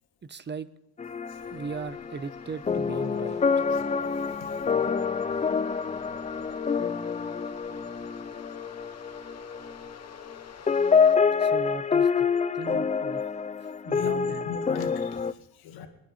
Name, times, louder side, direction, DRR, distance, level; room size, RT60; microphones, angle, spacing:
voice 1, 0.3-0.7 1.5-3.7 11.4-12.3 12.5-13.2 13.9-14.5, right 5 dB, 30° right, 14 dB, 1.0 m, -38 dB
sound 1, 1.0-10.4 10.7-15.3, left 6 dB, 20° left, 0.5 m, -27 dB
sound 2, 1.3-11.2, left 8 dB, 45° left, 1.0 m, -50 dB
voice 2, 13.8-15.9, left 7 dB, 75° left, 5 dB, 2.2 m, -39 dB
22.5 x 10.0 x 4.3 m, 0.89 s
supercardioid pair, 80°, 37 cm